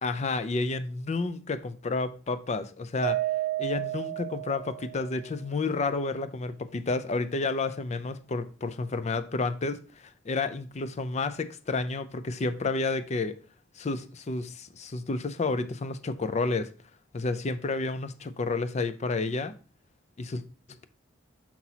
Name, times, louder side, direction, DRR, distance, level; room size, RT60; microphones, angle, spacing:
voice 1, 0.0-3.2 3.6-13.4 13.8-16.7 17.1-19.6 20.2-20.4 20.7-20.8, left 3 dB, 40° left, 0.5 m, -30 dB
Mallet percussion, 3.0-5.3, right 16 dB, 55° right, 0.4 m, -31 dB
6.0 x 5.8 x 2.8 m
head